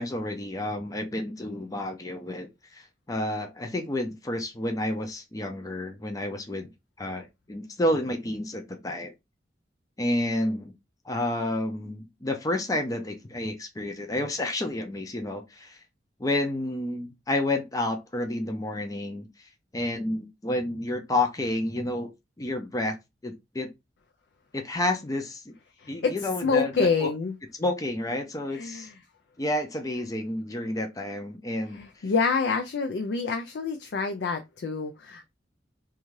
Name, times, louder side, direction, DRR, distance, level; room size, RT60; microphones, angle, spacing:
voice 1, 0.0-6.7 7.0-9.1 10.0-10.7 11.1-15.8 16.2-19.3 19.7-22.1 22.4-22.9 23.2-23.7 24.5-25.5 25.9-27.1 27.6-28.9 29.4-31.8, left 1 dB, 20° left, 0.5 m, -30 dB
voice 2, 25.8-27.4 28.5-29.0 31.7-35.3, left 4 dB, 70° left, 0.4 m, -27 dB
2.6 x 2.3 x 3.1 m
head